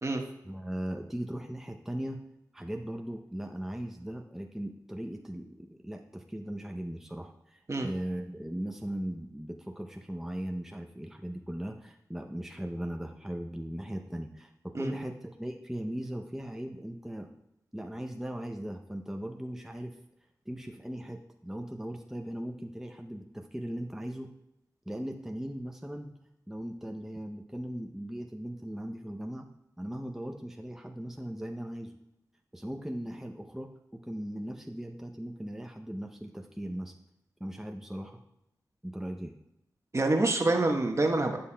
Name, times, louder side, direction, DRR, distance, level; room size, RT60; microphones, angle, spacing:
voice 1, 0.4-2.2 2.5-17.3 17.7-20.0 20.5-24.3 24.9-26.1 26.5-29.4 29.8-32.0 32.5-36.9 37.4-38.2 38.8-39.3, right 1 dB, 5° right, 3 dB, 0.6 m, -38 dB
voice 2, 39.9-41.4, right 2 dB, 40° right, 3 dB, 1.1 m, -26 dB
12.5 x 5.6 x 2.2 m, 0.86 s
cardioid pair, 45°, 7 cm